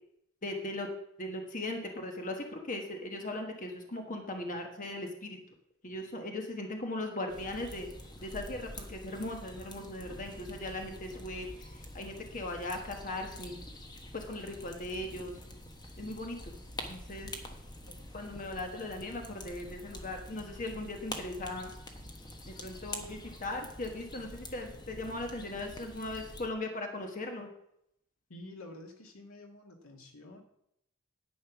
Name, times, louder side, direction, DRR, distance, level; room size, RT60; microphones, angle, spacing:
voice 1, 0.4-0.9 1.2-5.4 5.8-7.9 8.2-13.6 14.1-15.3 16.0-16.5 16.9-17.3 18.1-21.7 22.5-27.5, left 2 dB, 40° left, 3 dB, 1.3 m, -38 dB
sound 1, 7.3-26.5, left 1 dB, 20° left, 1.2 m, -46 dB
voice 2, 28.3-30.4, left 1 dB, 80° left, 3 dB, 2.1 m, -49 dB
10.5 x 8.8 x 6.0 m, 0.78 s
head